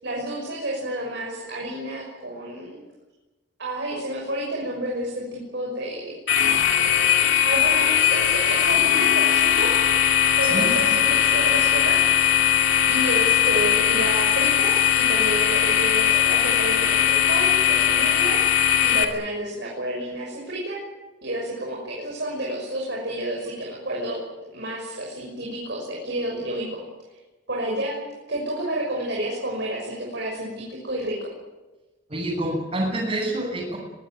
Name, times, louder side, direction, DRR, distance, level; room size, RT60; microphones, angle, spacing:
voice 1, 0.0-2.8 3.6-6.2 7.4-9.8 10.4-12.5 12.9-18.4 18.8-20.8 21.2-24.2 24.5-26.8 27.5-31.3, right 1 dB, 65° right, -2 dB, 6.3 m, -30 dB
sound 1, 6.3-19.0, left 10 dB, 80° left, 2.8 m, -19 dB
voice 2, 10.4-11.0 32.1-33.8, right 1 dB, 35° right, -4 dB, 7.3 m, -27 dB
24.0 x 19.0 x 9.4 m, 1.1 s
head